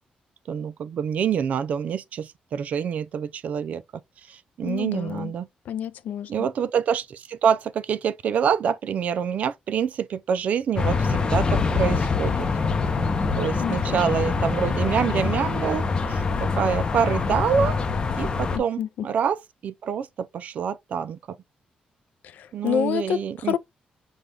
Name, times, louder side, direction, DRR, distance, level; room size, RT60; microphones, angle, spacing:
voice 1, 0.5-3.8 4.3-5.5 6.3-12.5 13.4-17.8 18.1-21.4 22.5-23.5, right 7 dB, 60° right, 0.4 m, -26 dB
voice 2, 4.6-5.3 5.7-6.5 13.6-14.0 18.5-18.9 22.2-23.6, left 9 dB, 75° left, 0.4 m, -28 dB
sound 1, 10.8-18.6, left 4 dB, 30° left, 0.6 m, -24 dB
5.4 x 2.3 x 3.2 m
cardioid pair, 140°, 3 cm